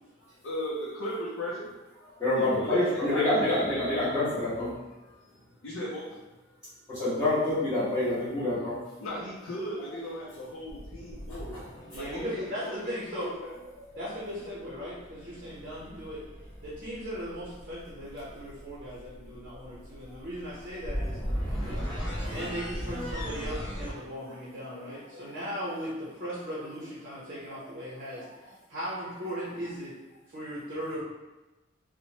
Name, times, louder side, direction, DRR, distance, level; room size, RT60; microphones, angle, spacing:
voice 1, 0.4-1.7 2.3-3.4 5.2-6.2 9.0-11.6 12.0-13.5 15.3-15.7, equal, 70° left, -7 dB, 0.5 m, -37 dB
voice 2, 2.2-4.7 6.9-8.8 11.5-11.6 13.8-13.9 21.0-21.1 22.2-22.3, left 1 dB, 15° left, -16 dB, 0.9 m, -27 dB
sound 1, 9.3-9.4 10.7-12.8 14.6-23.9, equal, 45° left, 1.1 m, -37 dB
voice 3, 11.9-13.3 13.9-16.2 16.6-21.2 22.3-28.2 28.7-30.0 30.3-31.0, equal, 40° right, -8 dB, 0.6 m, -38 dB
2.9 x 2.1 x 2.7 m, 1.1 s
head